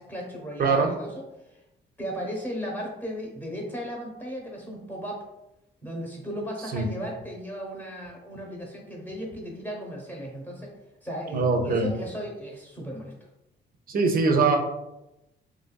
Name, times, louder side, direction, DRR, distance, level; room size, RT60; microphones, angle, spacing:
voice 1, 0.0-1.6 2.0-5.2 5.8-10.7 11.0-13.1, equal, 10° left, -1 dB, 0.9 m, -36 dB
voice 2, 0.6-0.9 6.7-6.9 11.3-11.9 13.9-14.6, right 4 dB, 45° right, 4 dB, 0.5 m, -22 dB
3.0 x 2.5 x 2.2 m, 0.91 s
cardioid pair, 90°, 20 cm